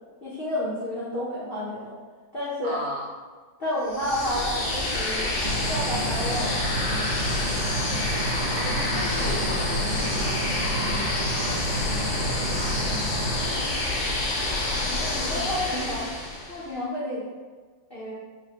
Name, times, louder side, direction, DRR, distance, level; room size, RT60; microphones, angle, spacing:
voice 1, 0.2-1.9 2.3-2.8 3.6-6.6 14.9-16.1 16.5-17.3 17.9-18.1, left 1 dB, 55° left, -9 dB, 0.6 m, -30 dB
voice 2, 2.6-3.1 8.5-13.0 13.5-13.8, equal, 55° right, -2 dB, 0.9 m, -37 dB
sound 1, 3.9-16.6, left 2 dB, 80° left, 1.5 m, -28 dB
sound 2, 5.4-13.4, right 3 dB, 70° right, 1.3 m, -32 dB
3.6 x 2.1 x 4.3 m, 1.5 s
omnidirectional pair, 2.0 m